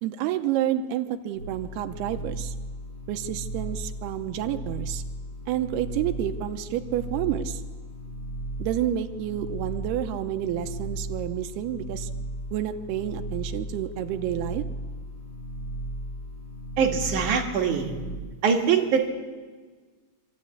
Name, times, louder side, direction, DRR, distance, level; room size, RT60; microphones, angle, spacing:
voice 1, 0.0-2.5 3.1-5.0 5.5-7.6 8.6-12.1 12.5-14.6, right 11 dB, 90° right, 8 dB, 2.8 m, -29 dB
sound 1, 1.4-18.2, equal, 75° left, 8.8 m, -36 dB
voice 2, 16.8-17.9 18.4-19.1, right 6 dB, 60° right, 2 dB, 3.0 m, -23 dB
25.5 x 13.5 x 8.5 m, 1.5 s
omnidirectional pair, 4.5 m